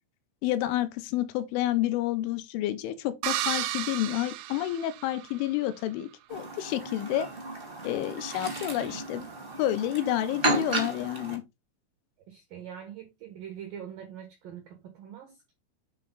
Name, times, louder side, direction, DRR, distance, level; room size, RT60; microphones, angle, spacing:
voice 1, 0.4-7.3 7.8-9.2 9.6-11.4, left 13 dB, 80° left, 3.1 m, -29 dB
sound 1, 3.2-5.5, right 13 dB, 90° right, 2.3 m, -33 dB
Chirp tweet, 6.3-11.4, right 2 dB, 40° right, 0.7 m, -33 dB
voice 2, 12.3-15.5, right 9 dB, 75° right, 2.0 m, -43 dB
8.5 x 4.4 x 3.8 m
omnidirectional pair, 5.7 m